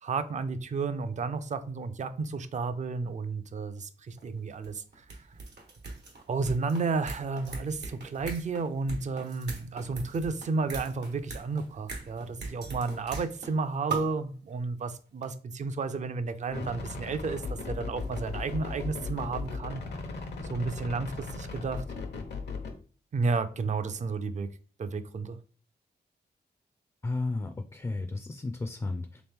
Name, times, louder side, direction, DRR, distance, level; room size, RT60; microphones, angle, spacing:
voice 1, 0.0-5.0 6.3-19.8 20.5-21.8 23.1-24.5 24.8-25.4, right 4 dB, 45° right, 0.4 m, -32 dB
sound 1, 4.2-4.3 4.5-13.6 13.9-14.2 14.9-15.0 15.2-15.3 16.6-16.7 17.8-19.2 19.4-19.5, right 4 dB, 85° right, 1.1 m, -40 dB
sound 2, 16.5-22.7, left 3 dB, 85° left, 0.8 m, -37 dB
voice 2, 27.0-29.2, left 3 dB, 20° left, 0.4 m, -33 dB
3.5 x 3.0 x 3.5 m
cardioid pair, 85°, 17 cm